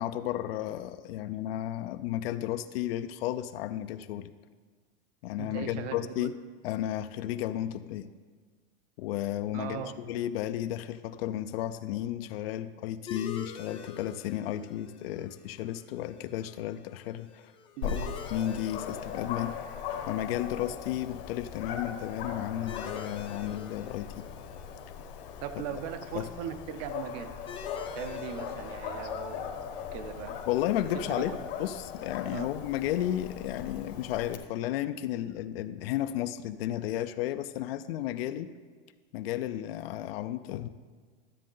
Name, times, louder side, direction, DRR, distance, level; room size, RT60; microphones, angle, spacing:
voice 1, 0.0-4.3 5.2-6.4 6.6-8.1 9.0-17.5 17.8-19.5 20.1-24.3 26.1-26.3 30.5-38.5 39.1-40.7, left 12 dB, 80° left, 11 dB, 0.5 m, -33 dB
voice 2, 5.4-6.3 9.5-9.9 17.8-18.1 25.4-27.3 27.9-29.6 29.9-30.4 30.9-31.4 32.3-32.5, right 8 dB, 40° right, 10 dB, 0.6 m, -39 dB
sound 1, 13.1-32.2, left 6 dB, 20° left, 0.6 m, -48 dB
Dog, 17.8-34.4, left 7 dB, 65° left, 1.1 m, -39 dB
13.0 x 7.4 x 3.8 m, 1.5 s
supercardioid pair, 175°, 30 cm